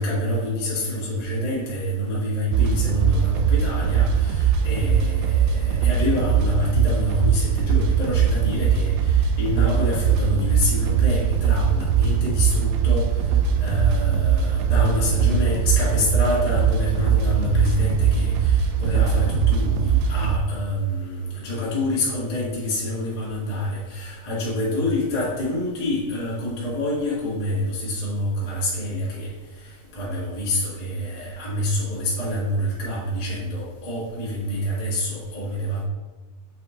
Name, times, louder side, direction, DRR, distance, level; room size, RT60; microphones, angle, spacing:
voice 1, 0.0-13.1 13.6-29.3 29.9-35.8, left 1 dB, 45° left, -6 dB, 0.5 m, -26 dB
sound 1, 2.5-20.4, right 7 dB, 80° right, 2.0 m, -21 dB
7.5 x 5.0 x 3.8 m, 1.2 s
omnidirectional pair, 4.1 m